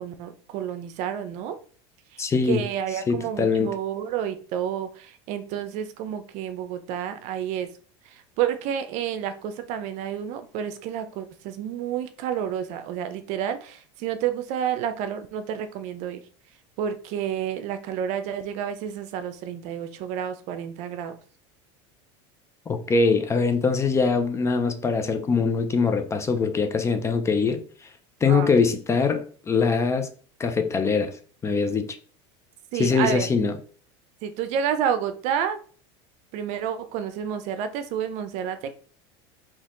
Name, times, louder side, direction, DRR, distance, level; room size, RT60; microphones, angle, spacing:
voice 1, 0.0-1.6 2.1-7.7 8.0-16.2 16.8-21.2 28.3-28.5 32.7-33.3 34.2-35.6 36.3-38.7, right 9 dB, 55° right, 0.7 m, -30 dB
voice 2, 2.2-2.6 3.1-3.7 22.7-27.6 28.2-30.1 30.4-31.9 32.7-33.5, left 4 dB, 20° left, 0.6 m, -23 dB
4.2 x 2.9 x 3.7 m
supercardioid pair, 135°, 14 cm